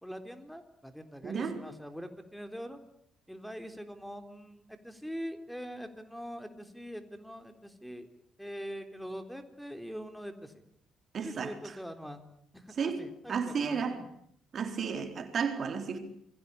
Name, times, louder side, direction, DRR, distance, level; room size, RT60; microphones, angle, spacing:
voice 1, 0.0-2.8 3.3-8.1 8.4-10.6 11.2-12.2 12.5-14.1, equal, ahead, 3.8 m, -43 dB
voice 2, 1.2-1.6 11.1-11.5 12.8-14.0 14.5-16.0, right 6 dB, 50° right, 4.1 m, -33 dB
28.5 x 22.5 x 8.6 m
hypercardioid pair, 45°, 0 cm